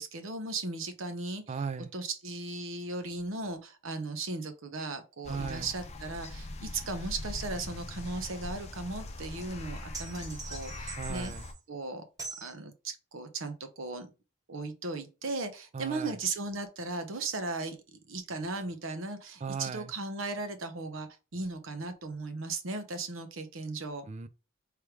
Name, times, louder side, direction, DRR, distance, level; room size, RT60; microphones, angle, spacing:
voice 1, 0.0-1.4 1.9-11.3 11.7-12.0 12.4-14.1 14.5-24.0, right 3 dB, 70° right, 0.9 m, -37 dB
voice 2, 1.5-1.9 5.3-5.7 11.0-11.5 15.7-16.2 19.4-19.9 24.1-24.3, right 5 dB, 35° right, 0.4 m, -37 dB
sound 1, 5.2-11.5, left 2 dB, 35° left, 0.7 m, -41 dB
sound 2, 9.9-11.6 12.2-12.5, right 4 dB, 20° right, 1.4 m, -43 dB
3.3 x 3.3 x 4.6 m
head